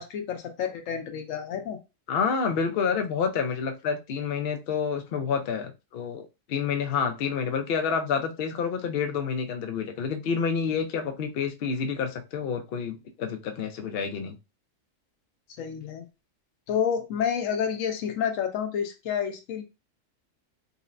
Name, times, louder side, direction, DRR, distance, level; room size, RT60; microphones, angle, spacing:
voice 1, 0.0-1.8 15.6-16.1 16.7-19.6, left 8 dB, 80° left, 7 dB, 1.0 m, -29 dB
voice 2, 2.1-6.2 6.5-14.4, left 6 dB, 60° left, 6 dB, 0.7 m, -28 dB
3.9 x 2.1 x 2.4 m, 0.26 s
omnidirectional pair, 1.4 m